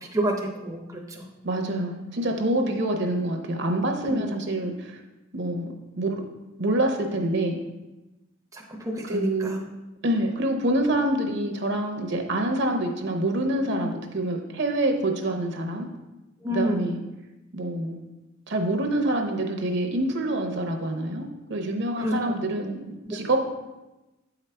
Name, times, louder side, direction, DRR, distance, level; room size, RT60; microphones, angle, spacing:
voice 1, 0.1-1.3 4.1-4.3 8.5-9.7 13.8-14.0 16.4-16.8 22.0-22.1 22.4-22.5 23.1-23.2, right 1 dB, 15° right, 0 dB, 0.6 m, -29 dB
voice 2, 1.4-5.0 5.3-6.2 6.6-7.6 9.1-9.5 10.0-15.9 16.5-17.0 17.5-18.0 18.5-23.5, right 1 dB, 60° right, 4 dB, 0.8 m, -26 dB
8.2 x 5.0 x 3.3 m, 1.0 s
head